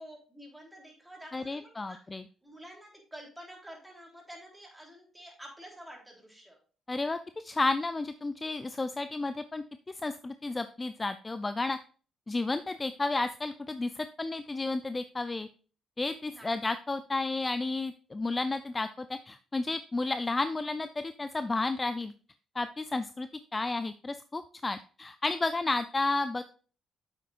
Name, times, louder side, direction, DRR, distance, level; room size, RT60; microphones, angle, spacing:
voice 1, 0.0-2.0 2.4-6.6 16.3-16.6, equal, 5° right, -1 dB, 3.4 m, -49 dB
voice 2, 1.3-2.2 6.9-11.8 12.3-15.5 16.0-22.1 22.6-26.4, left 3 dB, 25° left, 11 dB, 0.5 m, -32 dB
8.9 x 7.6 x 2.5 m, 0.39 s
cardioid pair, 90°, 0 cm